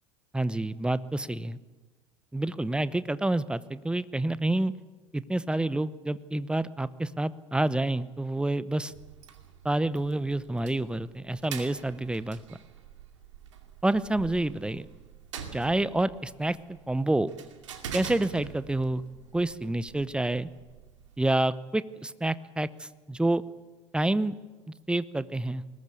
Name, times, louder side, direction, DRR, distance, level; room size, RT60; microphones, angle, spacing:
voice 1, 0.3-1.6 2.3-4.7 5.1-8.9 9.6-12.6 13.8-14.9 15.5-17.3 17.9-19.0 19.3-20.5 21.2-23.4 23.9-24.3 24.9-25.6, right 2 dB, 5° right, 17 dB, 0.8 m, -28 dB
sound 1, 8.9-21.3, right 7 dB, 75° right, 2.4 m, -45 dB
21.5 x 19.0 x 8.4 m, 1.3 s
figure-of-eight pair, 70°, 16 cm